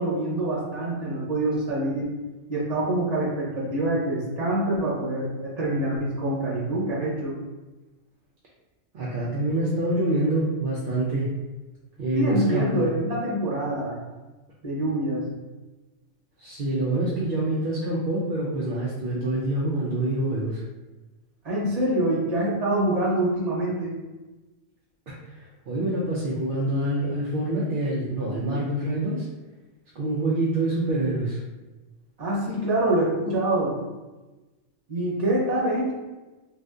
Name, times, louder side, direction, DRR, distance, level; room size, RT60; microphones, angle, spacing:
voice 1, 0.0-2.1 2.5-7.4 12.1-14.0 14.6-15.3 21.4-23.9 32.2-33.8 34.9-35.9, right 1 dB, 35° right, -6 dB, 1.0 m, -25 dB
voice 2, 8.9-11.3 12.0-12.9 16.4-20.6 25.1-29.3 30.0-31.4, right 1 dB, 55° right, -6 dB, 0.6 m, -26 dB
2.6 x 2.4 x 3.4 m, 1.1 s
omnidirectional pair, 1.3 m